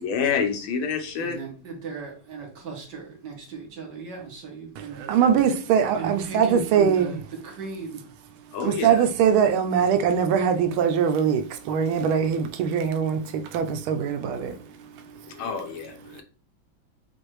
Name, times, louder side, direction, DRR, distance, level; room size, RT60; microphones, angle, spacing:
voice 1, 0.0-1.4 8.5-9.0 14.2-14.6 15.2-16.2, left 6 dB, 85° left, 1.7 m, -28 dB
voice 2, 1.2-5.0 6.0-8.0, right 4 dB, 60° right, 1.8 m, -36 dB
voice 3, 5.0-7.2 8.6-14.5, right 7 dB, 90° right, 1.5 m, -22 dB
6.1 x 2.6 x 3.1 m
omnidirectional pair, 2.2 m